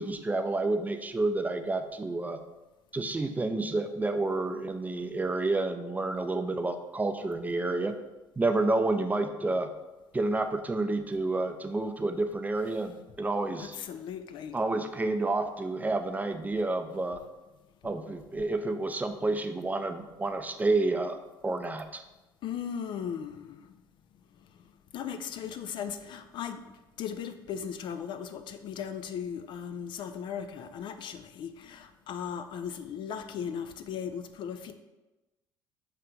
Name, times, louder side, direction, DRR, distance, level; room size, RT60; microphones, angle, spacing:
voice 1, 0.0-2.4 2.9-7.9 8.4-9.7 10.1-13.8 14.5-17.2 17.8-21.2 21.4-22.0, right 2 dB, 15° right, 7 dB, 0.5 m, -29 dB
voice 2, 13.6-14.5 22.4-23.6 24.9-26.6 27.0-34.7, left 8 dB, 45° left, 9 dB, 0.4 m, -37 dB
5.7 x 3.2 x 5.0 m, 1.1 s
figure-of-eight pair, 55°, 12 cm